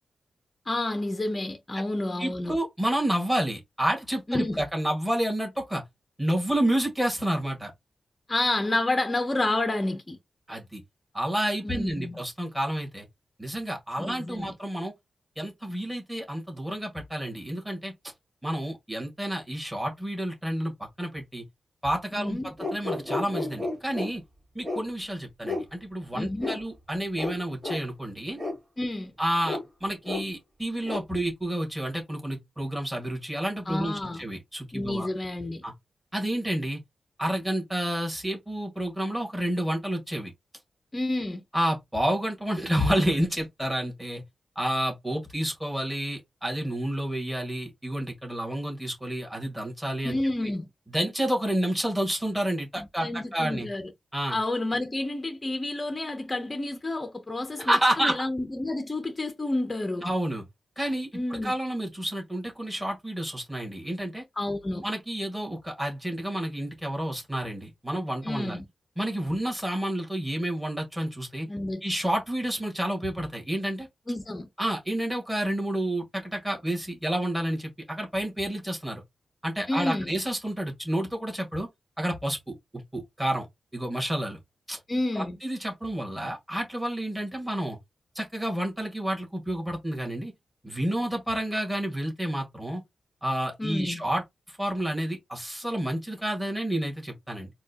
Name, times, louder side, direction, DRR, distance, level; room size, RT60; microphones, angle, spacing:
voice 1, 0.7-2.5 4.3-4.6 8.3-10.2 11.6-12.2 14.0-14.5 22.1-22.5 26.1-26.6 28.8-29.1 33.7-34.3 34.7-35.6 40.9-41.4 50.0-50.7 52.8-53.8 54.3-60.0 61.1-61.5 64.4-64.8 68.2-68.6 71.5-71.8 74.1-74.5 79.7-80.1 84.9-85.4 93.6-94.0, left 2 dB, 20° left, 0.7 m, -30 dB
voice 2, 2.2-5.8 6.2-7.7 10.5-10.8 11.1-13.1 13.4-14.9 15.3-17.9 18.4-21.4 21.8-24.2 24.5-28.4 29.2-35.1 35.6-35.7 36.1-36.8 37.2-40.3 41.5-44.2 44.5-50.2 50.9-53.7 54.1-54.4 57.6-58.2 60.0-60.4 60.8-61.1 61.4-64.2 64.8-68.6 69.0-71.5 71.8-73.9 74.6-79.0 79.4-81.7 82.0-83.5 83.7-84.4 84.7-84.8 85.1-87.8 88.1-90.3 90.6-92.8 93.2-97.5, right 1 dB, 5° right, 1.7 m, -30 dB
sound 1, 22.6-24.1 24.6-24.8 25.4-25.7 26.4-26.6 27.2-27.3 27.6-27.8 28.4-28.5 29.4-29.6 30.0-30.2 30.8-31.0, left 2 dB, 40° right, 2.2 m, -31 dB
4.3 x 2.3 x 2.8 m
wide cardioid pair, 120°, 0 cm